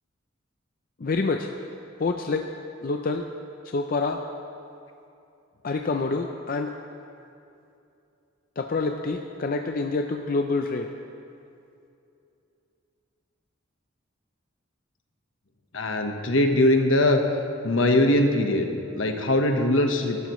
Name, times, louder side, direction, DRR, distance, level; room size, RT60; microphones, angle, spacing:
voice 1, 1.0-1.5 2.0-2.5 2.8-3.2 3.6-4.2 5.6-6.7 8.6-10.9, left 3 dB, 45° left, 4 dB, 0.5 m, -27 dB
voice 2, 15.7-17.2 17.6-18.7 18.9-20.2, left 1 dB, 75° left, 4 dB, 1.2 m, -21 dB
23.5 x 12.5 x 3.1 m, 2.7 s
head